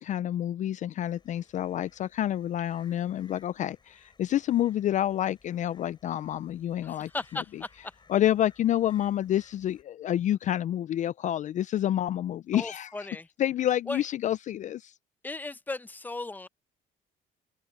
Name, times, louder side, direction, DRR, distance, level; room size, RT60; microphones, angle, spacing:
voice 1, 0.0-7.1 8.1-13.1 13.4-14.9, left 12 dB, 45° left, 0.4 m, -28 dB
sound 1, 1.0-9.8, left 4 dB, 25° left, 5.4 m, -62 dB
voice 2, 6.8-7.9 12.5-13.3 13.9-14.0 15.2-16.5, left 2 dB, 10° left, 0.7 m, -36 dB
open air
cardioid pair, 110°, 17 cm